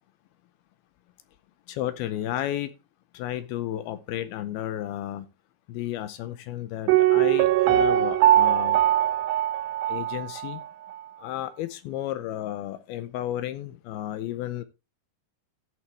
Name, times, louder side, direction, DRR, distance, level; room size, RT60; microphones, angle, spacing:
voice 1, 1.7-2.7 3.1-5.3 5.7-8.8 9.9-10.6 11.2-14.6, left 12 dB, 80° left, 12 dB, 2.3 m, -33 dB
Piano, 6.9-10.7 10.9-11.0, right 13 dB, 80° right, 2.9 m, -21 dB
15.5 x 6.2 x 3.3 m, 0.27 s
omnidirectional pair, 5.0 m